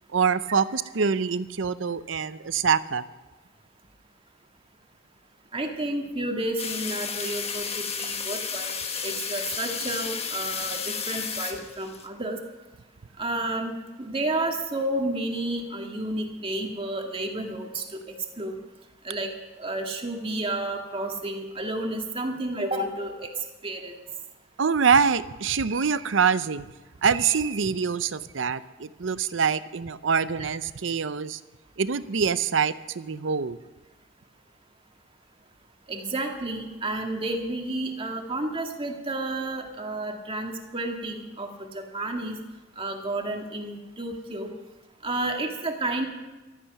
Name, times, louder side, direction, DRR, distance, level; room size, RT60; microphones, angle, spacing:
voice 1, 0.1-3.0 24.6-26.7 27.0-31.4 31.8-33.6, right 6 dB, 80° right, 14 dB, 0.6 m, -25 dB
voice 2, 5.5-8.7 9.0-10.8 11.1-12.4 13.2-18.0 18.4-18.6 19.0-19.3 19.6-23.3 23.6-24.0 35.9-42.4 42.8-44.5 45.0-46.1, right 2 dB, 30° right, 2 dB, 2.0 m, -31 dB
sound 1, 6.6-12.1, left 6 dB, 35° left, 1.3 m, -32 dB
14.5 x 13.0 x 5.9 m, 1.2 s
head